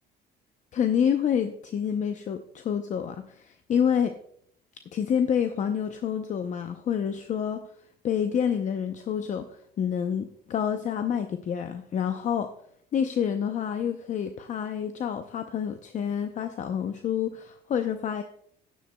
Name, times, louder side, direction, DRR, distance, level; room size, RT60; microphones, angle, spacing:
voice 1, 0.7-4.2 4.9-7.7 8.0-12.5 12.9-18.2, left 8 dB, 45° left, 8 dB, 0.6 m, -28 dB
14.0 x 10.5 x 2.2 m, 0.67 s
cardioid pair, 110°, 17 cm